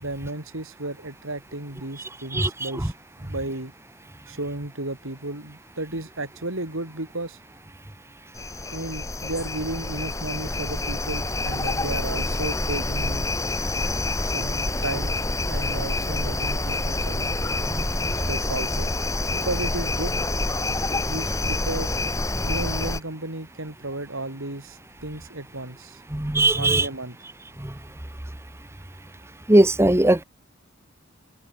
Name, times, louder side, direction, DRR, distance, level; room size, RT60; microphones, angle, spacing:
voice 1, 0.0-2.9 3.2-3.7 4.3-7.4 8.7-13.3 14.2-15.2 15.5-17.3 18.3-18.9 19.3-20.1 21.1-21.9 22.4-26.0 26.5-27.2, right 2 dB, 85° right, 4.4 m, -33 dB
sound 1, 8.3-23.0, left 2 dB, 15° left, 1.2 m, -27 dB
voice 2, 26.1-26.9 27.6-27.7 29.5-30.2, right 1 dB, 15° right, 0.9 m, -19 dB
head